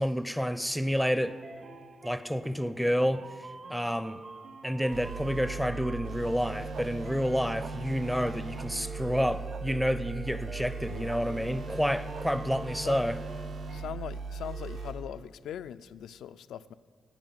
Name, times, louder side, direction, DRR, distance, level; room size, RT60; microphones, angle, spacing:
voice 1, 0.0-1.4 2.0-3.2 3.7-4.2 4.6-13.2, equal, ahead, 0.5 m, -29 dB
sound 1, 1.2-13.9, right 3 dB, 45° right, 0.8 m, -47 dB
sound 2, 4.9-14.9, right 4 dB, 85° right, 1.9 m, -39 dB
sound 3, 6.7-6.9 7.6-7.7 8.5-8.7 9.5-9.6 11.1-11.2 12.1-12.3, right 6 dB, 60° right, 0.3 m, -45 dB
voice 2, 13.7-16.7, left 9 dB, 85° left, 0.3 m, -40 dB
11.0 x 8.7 x 8.9 m
cardioid pair, 120°, 0 cm